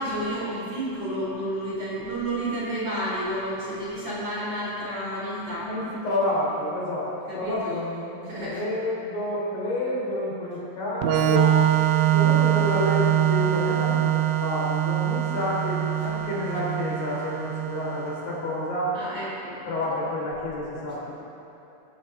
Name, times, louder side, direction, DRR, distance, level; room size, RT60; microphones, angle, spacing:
voice 1, 0.0-5.7 7.3-7.8 8.3-8.6 18.9-19.6, right 1 dB, 35° right, -7 dB, 4.1 m, -31 dB
voice 2, 5.6-11.6 12.0-19.0 19.6-21.1, left 1 dB, 50° left, -6 dB, 5.4 m, -29 dB
Organ, 11.0-18.5, right 12 dB, 80° right, 2.7 m, -23 dB
23.5 x 14.5 x 3.9 m, 2.9 s
omnidirectional pair, 5.4 m